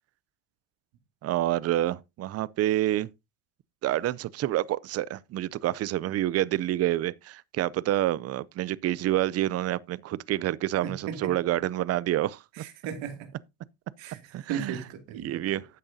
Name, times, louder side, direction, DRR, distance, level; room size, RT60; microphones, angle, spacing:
voice 1, 1.2-3.1 3.8-12.6 14.3-14.8 15.2-15.7, right 14 dB, 35° right, 0.4 m, -28 dB
voice 2, 10.8-11.3 12.6-13.3 14.0-14.2 14.5-15.4, right 8 dB, 65° right, 2.5 m, -36 dB
12.0 x 8.6 x 2.7 m
supercardioid pair, 105°, 49 cm